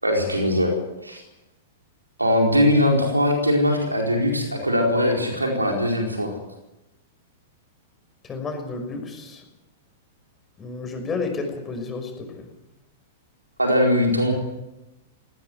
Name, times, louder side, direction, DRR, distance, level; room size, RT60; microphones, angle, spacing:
voice 1, 0.0-0.7 1.0-1.2 2.2-6.3 13.6-14.3, left 1 dB, 85° right, 1 dB, 4.6 m, -21 dB
voice 2, 8.3-9.4 10.6-12.5, left 4 dB, 20° left, 4 dB, 5.6 m, -31 dB
18.5 x 18.0 x 9.5 m, 0.97 s
figure-of-eight pair, 100°, 0 cm